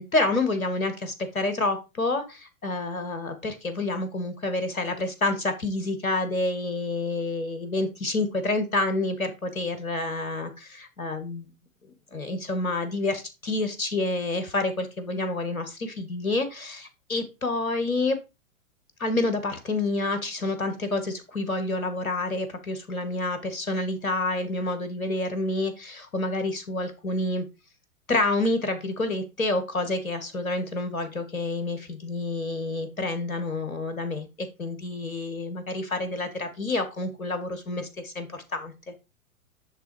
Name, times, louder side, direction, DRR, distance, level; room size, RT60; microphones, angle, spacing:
voice 1, 0.0-11.5 12.1-18.2 19.0-27.4 28.1-38.9, left 2 dB, 75° left, 9 dB, 2.1 m, -28 dB
10.0 x 3.9 x 4.9 m, 0.26 s
figure-of-eight pair, 110°, 42 cm